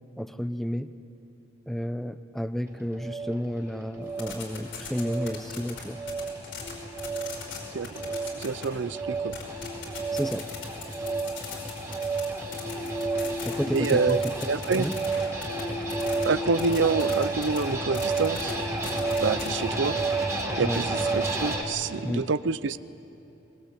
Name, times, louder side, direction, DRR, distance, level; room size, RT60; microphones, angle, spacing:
voice 1, 0.2-0.9 1.7-6.0 10.1-10.5 13.4-14.3 14.8-15.0 20.6-20.8 22.0-22.3, equal, ahead, 11 dB, 0.6 m, -31 dB
sound 1, 2.7-21.6, right 3 dB, 15° right, 2.5 m, -31 dB
sound 2, 3.6-20.2, left 2 dB, 35° left, 1.5 m, -41 dB
sound 3, 4.1-6.7 7.0-7.6 7.8-8.6 9.3-16.2 16.5-17.6 17.9-18.5 18.8-19.7, left 6 dB, 80° left, 5.2 m, -40 dB
voice 2, 7.7-9.5 13.7-14.2 14.5-14.9 16.2-18.5 19.2-20.0 20.6-22.8, right 4 dB, 75° right, 17 dB, 0.6 m, -27 dB
22.0 x 20.5 x 8.8 m, 2.9 s
head